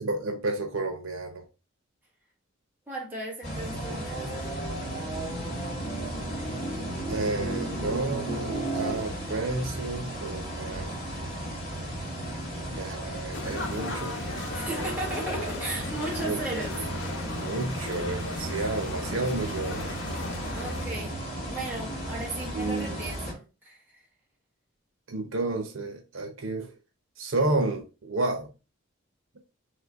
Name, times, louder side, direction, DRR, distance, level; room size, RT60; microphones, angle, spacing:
voice 1, 0.0-1.4 7.1-11.0 12.7-14.6 16.2-16.4 17.3-19.9 22.5-23.0 25.1-26.7 27.2-28.5, right 2 dB, 75° right, 0.9 m, -31 dB
voice 2, 2.9-4.6 14.5-16.9 20.5-21.1 21.4-24.0, right 2 dB, 10° right, 1.4 m, -36 dB
sound 1, 3.4-23.3, right 1 dB, 40° left, 1.8 m, -34 dB
sound 2, 13.3-20.9, left 2 dB, 65° left, 1.0 m, -37 dB
4.2 x 3.1 x 3.5 m
head